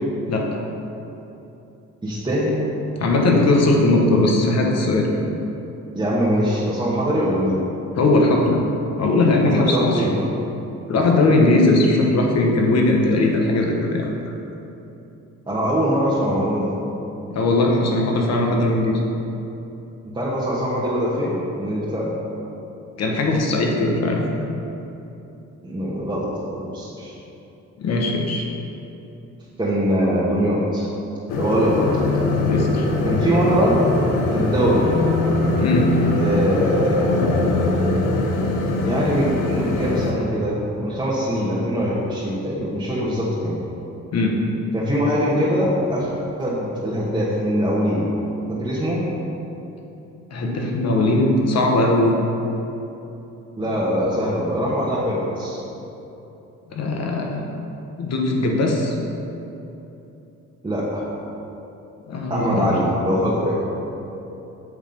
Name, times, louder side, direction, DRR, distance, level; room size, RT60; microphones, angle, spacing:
voice 1, 0.3-0.6 3.0-5.1 8.0-8.6 9.0-10.1 10.9-14.1 17.3-19.0 23.0-24.2 27.8-28.4 32.5-32.9 35.5-35.9 44.1-44.4 50.3-52.1 56.7-57.4 58.0-58.9 62.1-62.8, left 2 dB, 55° left, 0 dB, 1.1 m, -19 dB
voice 2, 2.0-2.6 5.9-7.6 9.6-10.1 15.5-16.7 20.1-22.1 25.6-27.1 29.6-30.9 31.4-31.8 33.0-33.8 34.3-34.9 36.2-37.7 38.8-43.6 44.7-46.1 46.4-48.1 48.5-49.0 53.6-55.6 60.6-61.1 62.3-63.6, equal, 15° right, -9 dB, 1.2 m, -22 dB
sound 1, 31.3-40.1, left 2 dB, 85° left, 0.8 m, -22 dB
8.0 x 3.5 x 5.2 m, 3.0 s
cardioid pair, 90°, 30 cm